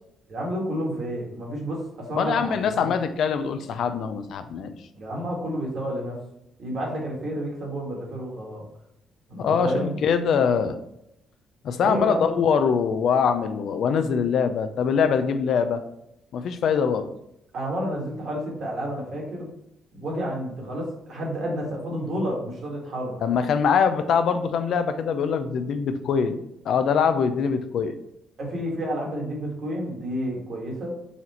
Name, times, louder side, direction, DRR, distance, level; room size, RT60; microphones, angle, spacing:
voice 1, 0.3-2.9 4.9-6.1 6.6-8.6 9.3-10.0 11.8-12.3 17.5-19.5 19.9-23.2 28.4-30.9, equal, 60° right, -2 dB, 1.6 m, -30 dB
voice 2, 2.2-4.8 9.4-10.8 11.6-15.8 16.3-17.1 23.2-26.4 26.7-27.9, left 6 dB, 70° left, 9 dB, 0.4 m, -23 dB
4.2 x 2.5 x 4.2 m, 0.79 s
cardioid pair, 90°, 0 cm